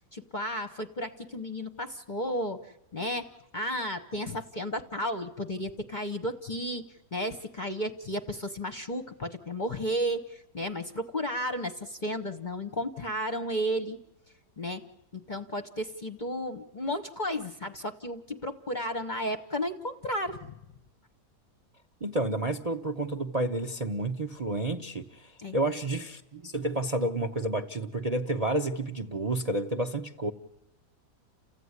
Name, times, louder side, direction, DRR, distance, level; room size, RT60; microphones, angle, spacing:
voice 1, 0.0-14.0 14.6-14.9 15.1-20.5 25.4-25.5, equal, 35° left, 0.9 m, -33 dB
voice 2, 22.0-30.3, right 2 dB, 30° right, 0.7 m, -30 dB
29.5 x 15.5 x 9.6 m
omnidirectional pair, 1.8 m